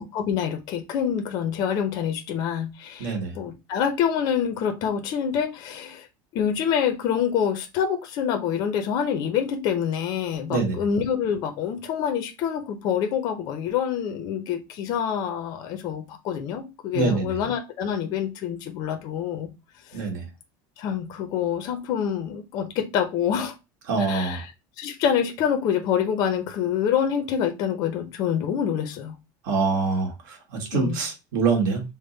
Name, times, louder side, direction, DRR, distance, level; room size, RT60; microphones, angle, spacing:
voice 1, 0.0-6.1 6.3-19.5 19.9-20.0 20.8-23.5 24.0-24.5 24.8-29.2 30.7-31.0, left 8 dB, 40° left, 0.5 m, -26 dB
voice 2, 3.0-3.3 10.5-10.8 16.9-17.4 19.9-20.3 23.9-24.4 29.4-31.8, right 4 dB, 75° right, 1.3 m, -25 dB
3.5 x 2.0 x 3.7 m
cardioid pair, 175°, 10 cm